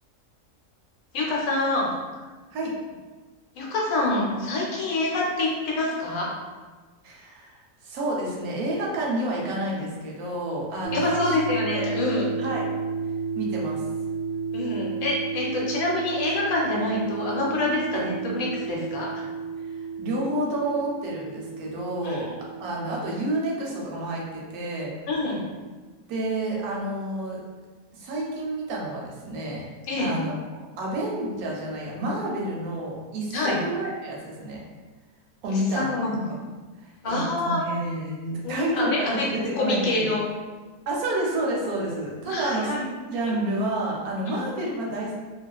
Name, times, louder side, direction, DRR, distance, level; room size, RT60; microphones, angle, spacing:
voice 1, 1.1-1.9 3.5-6.3 10.9-12.3 14.5-19.1 22.0-22.2 25.1-25.4 29.9-30.1 33.3-33.6 35.5-36.2 37.0-37.6 38.4-39.2 39.6-40.2 42.3-42.8 44.3-44.4, left 2 dB, 75° left, -3 dB, 1.1 m, -26 dB
voice 2, 7.0-11.4 11.7-11.8 12.4-12.7 13.3-13.8 17.9-18.0 19.6-22.3 22.6-24.9 26.1-27.4 27.9-29.7 30.0-34.6 35.4-35.9 36.8-40.1 40.9-42.7 43.1-45.1, right 1 dB, 90° right, -2 dB, 1.1 m, -29 dB
sound 1, 10.8-24.8, right 5 dB, 70° right, 0.9 m, -32 dB
2.4 x 2.3 x 2.2 m, 1.3 s
omnidirectional pair, 1.5 m